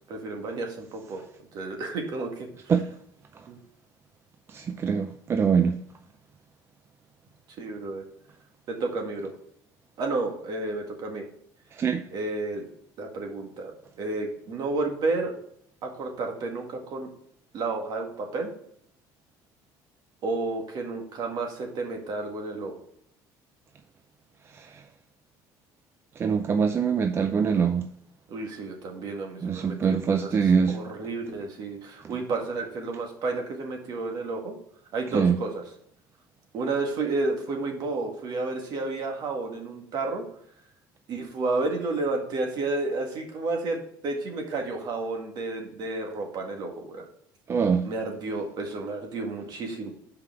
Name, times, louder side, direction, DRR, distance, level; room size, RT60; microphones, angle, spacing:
voice 1, 0.1-1.2 1.5-2.5 3.5-3.6 7.6-8.0 8.7-9.3 10.0-11.2 12.1-12.7 13.0-15.3 15.8-17.1 17.5-18.5 20.2-22.7 28.3-34.5 34.9-35.6 36.5-40.2 41.1-47.1 47.8-49.9, right 3 dB, 50° right, 1.8 m, -31 dB
voice 2, 4.5-5.8 11.7-12.0 24.5-24.8 26.2-27.9 29.4-30.8 35.1-35.4 47.5-47.9, right 6 dB, 30° right, 0.4 m, -24 dB
5.8 x 4.9 x 4.8 m
cardioid pair, 120°, 9 cm